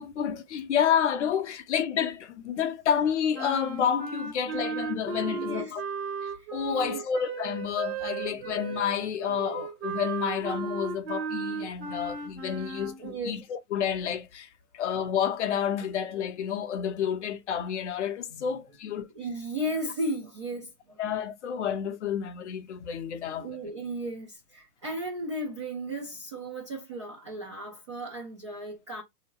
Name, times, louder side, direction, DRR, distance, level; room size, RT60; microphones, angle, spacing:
voice 1, 0.0-5.8 6.2-14.5 14.7-19.1 21.0-23.5, left 8 dB, 50° left, 0.6 m, -29 dB
sound 1, 3.3-13.0, right 5 dB, 40° right, 1.0 m, -35 dB
voice 2, 5.2-5.8 6.4-7.0 8.3-8.4 13.0-13.4 18.3-18.5 19.1-21.0 23.3-29.0, right 1 dB, 20° right, 0.4 m, -35 dB
3.7 x 2.7 x 2.9 m
hypercardioid pair, 140°, 46 cm